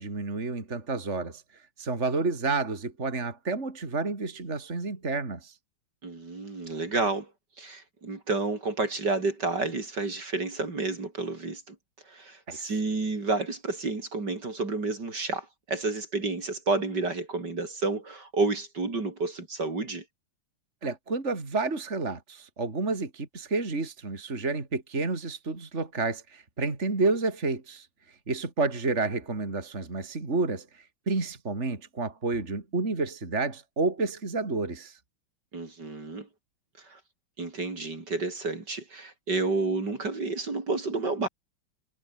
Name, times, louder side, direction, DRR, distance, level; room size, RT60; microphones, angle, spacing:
voice 1, 0.0-1.4 1.8-5.6 12.5-12.7 20.8-27.9 28.3-35.0, right 3 dB, 35° right, 3.6 m, -30 dB
voice 2, 6.0-7.3 7.6-11.8 12.1-20.0 35.5-36.3 36.9-37.0 37.4-41.3, right 3 dB, 50° right, 4.5 m, -30 dB
omnidirectional pair, 2.3 m